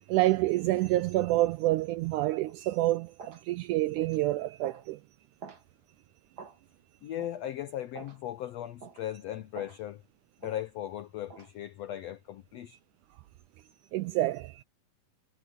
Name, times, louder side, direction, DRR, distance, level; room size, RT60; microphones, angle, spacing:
voice 1, 0.1-5.0 13.9-14.6, right 17 dB, 80° right, 1.8 m, -28 dB
sound 1, 2.5-2.6 3.2-3.4 4.0-4.2 4.6-4.9 5.4-5.6 6.4-6.6 7.2-7.4 7.9-8.2 8.8-9.0 9.5-9.8 10.4-10.6 11.3-11.5, right 5 dB, 40° right, 1.7 m, -47 dB
voice 2, 7.0-10.0 10.4-12.8, left 12 dB, 85° left, 1.4 m, -38 dB
omnidirectional pair, 4.0 m